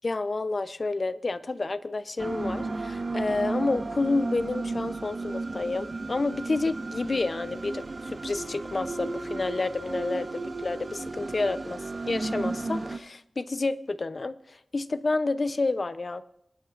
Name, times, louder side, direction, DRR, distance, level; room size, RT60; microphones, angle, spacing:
voice 1, 0.0-16.2, left 3 dB, 50° left, 13 dB, 0.6 m, -29 dB
sound 1, 2.2-13.0, right 3 dB, 50° right, 0.6 m, -34 dB
25.5 x 10.0 x 2.5 m, 0.78 s
wide cardioid pair, 75°, 0 cm